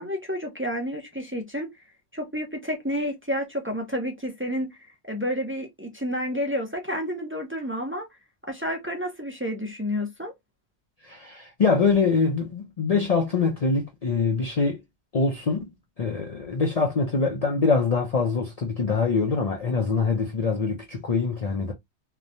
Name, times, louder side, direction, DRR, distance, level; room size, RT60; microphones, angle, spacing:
voice 1, 0.0-1.7 2.1-4.8 5.1-8.1 8.5-10.3, equal, 15° right, 0.4 m, -30 dB
voice 2, 11.0-14.8 15.1-21.7, left 4 dB, 45° left, 0.5 m, -24 dB
3.0 x 2.2 x 2.5 m
omnidirectional pair, 1.2 m